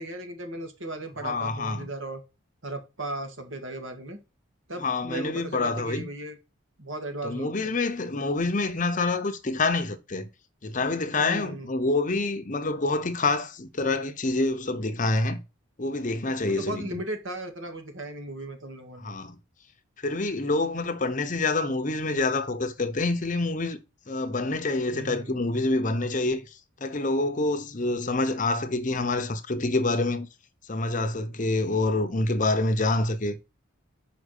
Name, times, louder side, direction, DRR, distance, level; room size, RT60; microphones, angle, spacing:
voice 1, 0.0-2.2 2.6-4.2 4.7-6.4 6.8-7.7 11.2-11.7 16.5-19.1 24.9-25.5, right 2 dB, 65° right, 1.9 m, -36 dB
voice 2, 1.2-1.9 4.8-6.1 7.2-10.3 10.6-15.4 15.8-17.0 19.0-19.4 20.0-23.8 24.1-30.3 30.7-33.3, left 2 dB, 40° left, 0.8 m, -27 dB
6.0 x 5.0 x 6.5 m
head